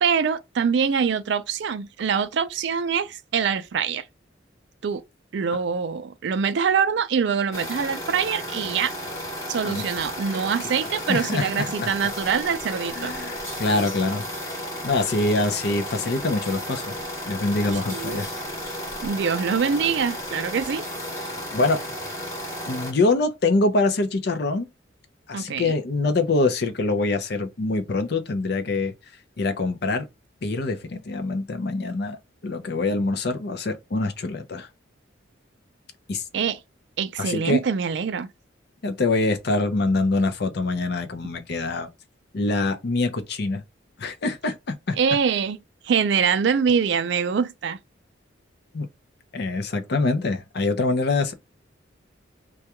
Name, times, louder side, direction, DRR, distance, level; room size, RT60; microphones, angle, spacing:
voice 1, 0.0-4.0 4.8-5.0 5.3-8.9 9.5-13.1 17.9-18.2 19.0-20.8 25.3-25.7 36.3-36.6 37.0-38.3 45.0-45.6 45.8-47.8, right 6 dB, 60° right, 0.3 m, -24 dB
sound 1, 7.5-22.9, equal, 15° left, 0.9 m, -33 dB
voice 2, 11.1-11.9 12.9-14.2 14.8-16.9 17.2-18.3 21.5-21.8 22.7-24.7 25.3-28.9 29.4-30.1 30.4-32.2 32.4-34.7 36.1-36.2 37.2-37.6 38.8-41.9 42.3-43.6 44.0-45.0 48.7-48.9 49.3-51.3, left 3 dB, 55° left, 0.5 m, -24 dB
2.3 x 2.2 x 2.8 m
head